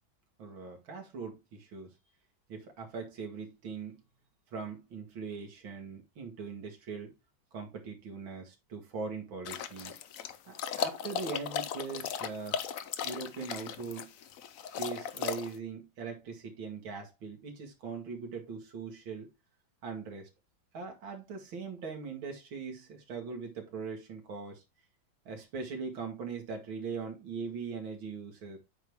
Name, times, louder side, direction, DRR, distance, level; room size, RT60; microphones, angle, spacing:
voice 1, 0.4-1.9 2.5-4.0 4.5-7.1 7.5-10.0 10.5-12.6 13.0-14.1 14.7-19.3 19.8-20.3 20.7-24.6 25.3-28.6, right 5 dB, 85° right, 2.5 m, -41 dB
sound 1, 9.5-15.6, left 8 dB, 65° left, 0.8 m, -37 dB
8.8 x 3.5 x 4.7 m
omnidirectional pair, 2.1 m